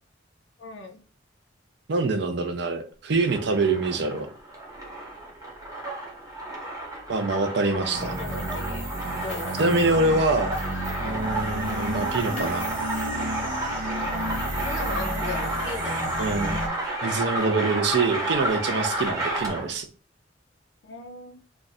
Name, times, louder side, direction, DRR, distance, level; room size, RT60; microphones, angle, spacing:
voice 1, 0.6-1.0 7.8-9.6 11.0-11.4 13.9-16.7 20.8-21.4, left 3 dB, 75° left, 7 dB, 0.5 m, -39 dB
voice 2, 1.9-4.3 7.1-8.1 9.6-10.6 11.0-12.7 16.2-16.6 17.0-19.9, right 3 dB, 60° right, 7 dB, 0.5 m, -25 dB
sound 1, 3.1-19.8, right 1 dB, 20° right, 0.8 m, -31 dB
sound 2, 7.9-16.7, equal, 90° right, 1.0 m, -33 dB
sound 3, 9.0-10.0 10.3-11.2 11.6-13.1, left 3 dB, 35° left, 0.7 m, -44 dB
2.4 x 2.3 x 4.0 m, 0.38 s
head